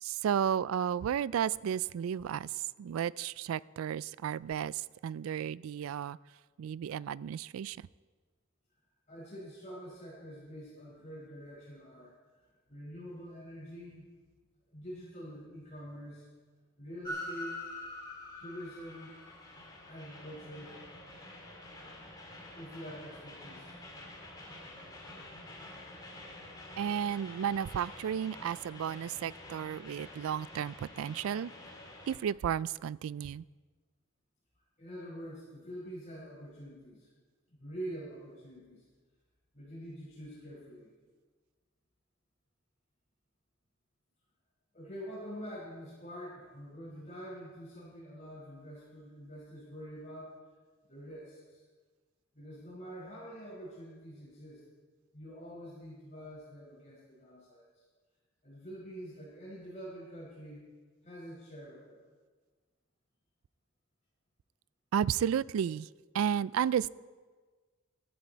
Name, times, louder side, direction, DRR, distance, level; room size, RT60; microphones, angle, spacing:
voice 1, 0.0-6.2 6.6-7.8 26.8-31.5 32.1-33.4 64.9-65.9 66.1-66.9, right 8 dB, 90° right, 21 dB, 0.3 m, -33 dB
voice 2, 9.1-12.1 12.7-14.1 14.7-16.3 16.8-17.6 18.3-19.1 19.8-20.8 22.5-23.7 34.8-37.1 37.5-38.8 39.5-40.9 44.7-50.3 50.9-51.6 52.3-54.6 55.1-57.7 58.4-60.6 61.0-62.0, equal, 35° left, -8 dB, 5.1 m, -46 dB
Train, 17.0-32.2, left 1 dB, 20° left, 2.3 m, -47 dB
15.0 x 13.0 x 4.5 m, 1.4 s
head